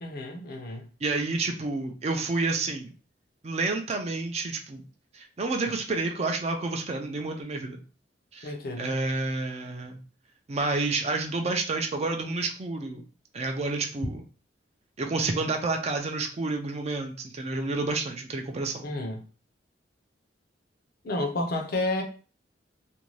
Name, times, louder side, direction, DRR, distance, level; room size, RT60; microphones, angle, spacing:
voice 1, 0.0-0.9 8.4-8.9 18.8-19.2 21.0-22.0, left 2 dB, 55° left, 0.6 m, -31 dB
voice 2, 1.0-2.9 3.4-4.8 5.1-7.8 8.3-10.0 10.5-13.0 13.3-14.2 15.0-18.8, right 3 dB, 35° right, 0.4 m, -29 dB
2.6 x 2.2 x 3.1 m
head